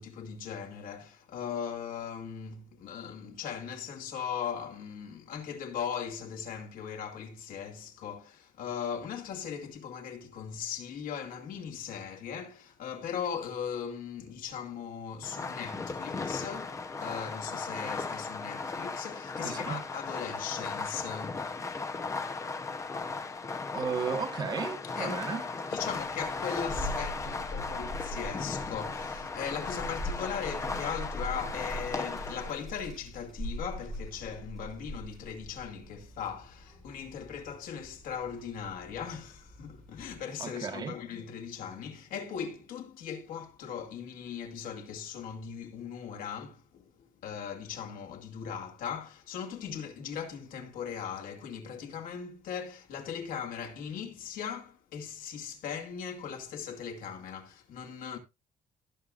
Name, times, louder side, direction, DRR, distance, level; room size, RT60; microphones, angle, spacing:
voice 1, 0.0-21.5 25.0-25.2 25.7-58.2, left 7 dB, 85° left, 2.3 m, -39 dB
Fireworks, 15.2-32.5, left 4 dB, 20° left, 0.8 m, -36 dB
voice 2, 19.4-19.8 23.7-25.5 40.4-40.9, right 6 dB, 30° right, 1.4 m, -34 dB
Child speech kid speaking, 25.8-40.2, equal, ahead, 4.2 m, -42 dB
18.5 x 6.9 x 2.5 m
cardioid pair, 175°, 14 cm